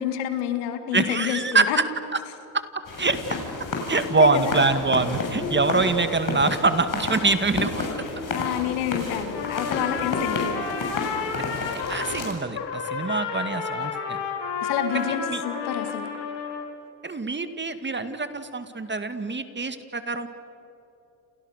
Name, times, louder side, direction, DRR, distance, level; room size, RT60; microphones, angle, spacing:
voice 1, 0.0-1.8 4.1-4.6 5.8-5.9 8.3-11.0 14.6-16.1, left 10 dB, 85° left, 7 dB, 2.5 m, -29 dB
voice 2, 0.9-1.7 2.5-2.6 3.0-3.2 3.9-7.9 11.4-14.2 14.9-15.4 17.0-20.3, right 3 dB, 20° right, 10 dB, 2.2 m, -24 dB
sound 1, 2.9-12.4, left 3 dB, 40° left, 6.8 m, -31 dB
Trumpet, 9.3-12.2 12.5-16.7, left 5 dB, 60° left, 4.9 m, -31 dB
30.0 x 28.5 x 6.8 m, 2.8 s
supercardioid pair, 70°, 48 cm